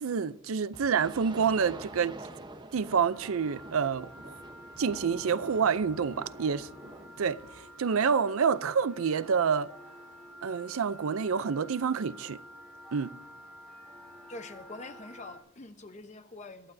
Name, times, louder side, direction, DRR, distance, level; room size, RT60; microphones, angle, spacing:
voice 1, 0.0-2.2 2.7-4.3 4.8-6.7 7.2-7.4 7.8-9.7 10.4-12.4 12.9-13.1, right 6 dB, 80° right, 0.5 m, -28 dB
sound 1, 0.7-7.7, right 2 dB, 20° right, 0.9 m, -47 dB
sound 2, 3.1-15.4, equal, ahead, 4.1 m, -50 dB
voice 2, 14.3-16.7, left 2 dB, 35° left, 0.9 m, -45 dB
23.5 x 12.0 x 2.7 m
head